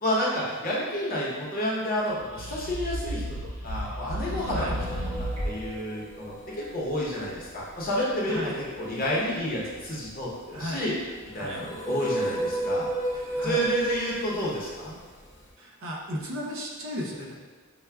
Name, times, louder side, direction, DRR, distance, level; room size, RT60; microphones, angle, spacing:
voice 1, 0.0-3.4 3.6-4.8 5.4-10.9 11.3-12.9 13.4-15.0, equal, 40° left, -5 dB, 0.8 m, -30 dB
sound 1, 2.1-5.7, equal, 80° right, 1.3 m, -33 dB
sound 2, 4.7-15.5, right 1 dB, 15° left, 0.4 m, -35 dB
voice 2, 8.3-8.6 10.5-10.9 11.4-11.7 13.3-13.7 15.6-17.3, equal, 60° right, -1 dB, 0.6 m, -35 dB
5.6 x 2.1 x 2.2 m, 1.4 s
head